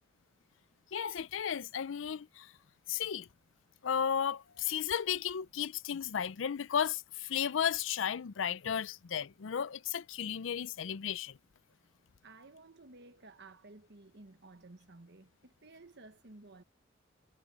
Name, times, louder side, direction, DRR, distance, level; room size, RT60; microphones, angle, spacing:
voice 1, 0.9-2.5 2.9-3.3 3.8-11.4, left 8 dB, 85° left, 0.5 m, -34 dB
voice 2, 12.2-16.6, right 2 dB, 60° right, 1.4 m, -55 dB
head